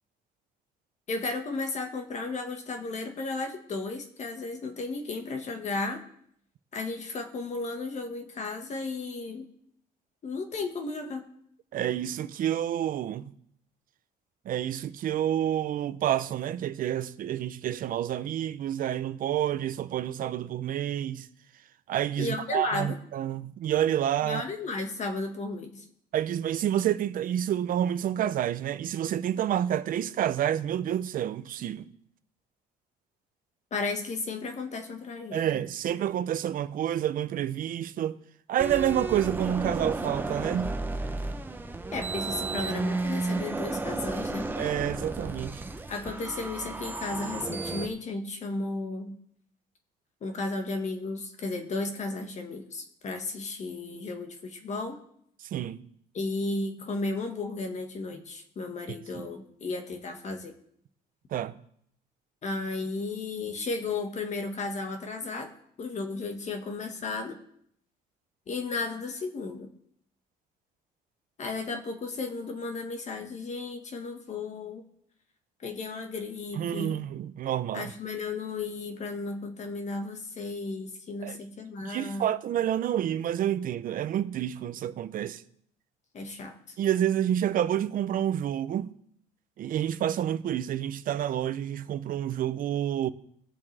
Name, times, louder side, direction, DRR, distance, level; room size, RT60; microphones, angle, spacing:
voice 1, 1.1-6.0 6.7-9.5 10.2-11.3 22.2-23.0 24.2-25.9 33.7-35.6 41.9-44.5 45.9-49.2 50.2-55.0 56.1-60.5 62.4-65.5 65.8-67.4 68.5-69.7 71.4-74.9 75.6-77.0 77.7-82.3 86.1-86.8, left 3 dB, 45° left, 1.6 m, -34 dB
voice 2, 11.7-13.3 14.5-21.3 21.9-24.4 26.1-31.9 35.3-38.2 38.5-40.8 44.6-45.6 55.5-55.8 59.2-59.3 61.3-61.5 76.6-77.9 81.2-81.4 81.8-85.4 86.8-88.9 89.6-93.1, right 10 dB, 55° right, 0.7 m, -29 dB
sound 1, 38.6-47.9, right 3 dB, 10° right, 0.7 m, -33 dB
19.5 x 7.2 x 3.4 m
cardioid pair, 110°, 17 cm